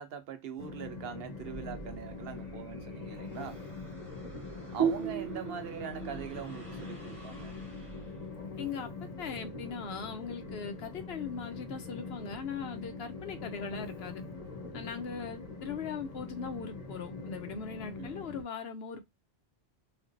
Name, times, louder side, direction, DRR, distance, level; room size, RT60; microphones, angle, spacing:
voice 1, 0.0-3.6 4.7-7.5 18.0-18.1, right 7 dB, 65° right, 0.8 m, -42 dB
Train, 0.6-18.4, left 3 dB, 40° left, 0.9 m, -43 dB
sound 1, 1.4-8.6, right 2 dB, 15° right, 1.3 m, -52 dB
sound 2, 4.8-8.2, right 7 dB, 35° right, 0.4 m, -35 dB
voice 2, 8.6-14.2 14.7-19.0, left 6 dB, 70° left, 0.9 m, -40 dB
4.3 x 2.3 x 2.6 m
omnidirectional pair, 1.1 m